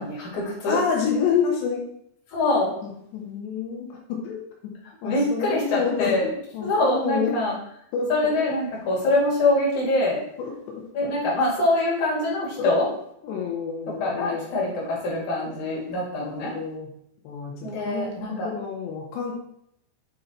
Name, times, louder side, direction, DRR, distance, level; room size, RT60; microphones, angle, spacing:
voice 1, 0.0-0.8 2.3-2.7 5.0-6.2 6.6-7.5 8.1-10.2 10.9-12.9 13.9-16.5 17.6-18.5, left 2 dB, 50° left, -5 dB, 3.7 m, -24 dB
voice 2, 0.7-1.9 2.8-4.4 5.0-7.4 7.9-8.4 10.4-11.1 12.6-12.7 13.2-14.5 15.4-15.5 16.2-16.9 17.2-19.3, left 6 dB, 85° left, -1 dB, 3.4 m, -29 dB
8.5 x 4.1 x 4.5 m, 0.72 s
omnidirectional pair, 4.8 m